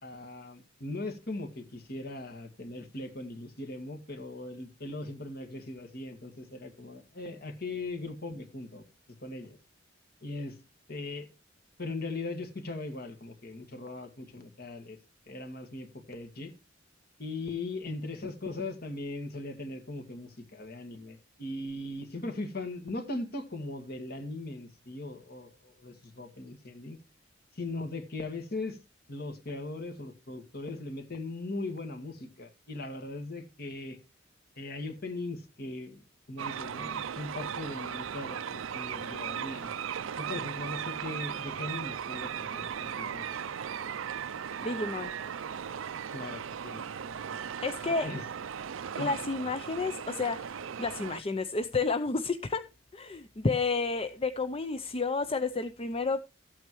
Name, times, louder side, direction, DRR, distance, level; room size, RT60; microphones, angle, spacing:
voice 1, 0.0-8.8 9.2-9.6 10.2-10.6 10.9-11.3 11.8-15.0 15.3-16.5 17.2-27.0 27.5-28.8 29.1-34.0 34.6-36.0 36.3-39.7 40.2-43.4 46.1-47.4 48.0-48.2 49.0-49.2, left 2 dB, 50° left, 1.9 m, -39 dB
sound 1, 36.4-51.2, right 8 dB, 85° right, 0.5 m, -37 dB
voice 2, 44.6-45.1 47.6-48.1 49.0-52.6 52.9-56.2, left 3 dB, 30° left, 0.6 m, -31 dB
14.0 x 8.5 x 3.1 m
head